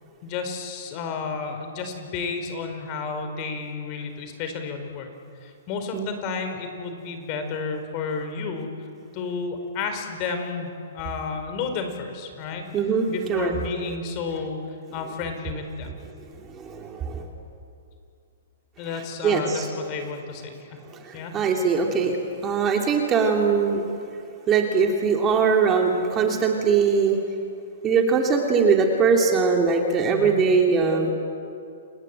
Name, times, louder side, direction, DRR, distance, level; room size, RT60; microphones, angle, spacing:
voice 1, 0.2-5.1 5.4-8.7 9.1-12.7 13.1-14.6 14.9-16.0 18.8-20.8 21.1-21.3 30.0-30.4, left 5 dB, 35° left, 6 dB, 4.7 m, -31 dB
voice 2, 12.7-13.5 16.5-17.3 19.2-19.7 20.9-22.2 22.4-23.8 24.5-27.2 27.8-31.1, right 5 dB, 20° right, 2 dB, 3.0 m, -21 dB
29.5 x 19.5 x 9.1 m, 2.5 s
hypercardioid pair, 140°, 0 cm